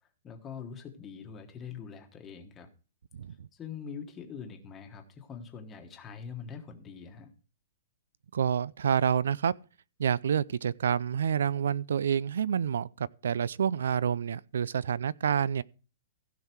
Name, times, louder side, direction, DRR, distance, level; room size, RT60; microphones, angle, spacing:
voice 1, 0.2-2.7 3.5-7.3, left 6 dB, 15° left, 1.3 m, -43 dB
voice 2, 8.3-9.5 10.0-15.6, right 8 dB, 85° right, 0.4 m, -28 dB
16.0 x 5.7 x 4.5 m
hypercardioid pair, 170°, 0 cm